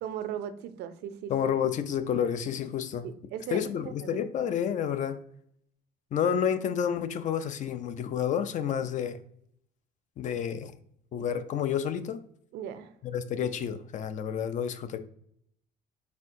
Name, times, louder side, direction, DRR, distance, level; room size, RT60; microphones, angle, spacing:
voice 1, 0.0-1.3 3.0-4.5 12.5-12.9, right 9 dB, 85° right, 0.5 m, -38 dB
voice 2, 1.3-3.1 3.5-5.2 6.1-9.2 10.2-10.7 11.1-12.2 13.0-15.0, left 8 dB, 45° left, 0.4 m, -30 dB
4.3 x 3.6 x 2.5 m
cardioid pair, 110°, 17 cm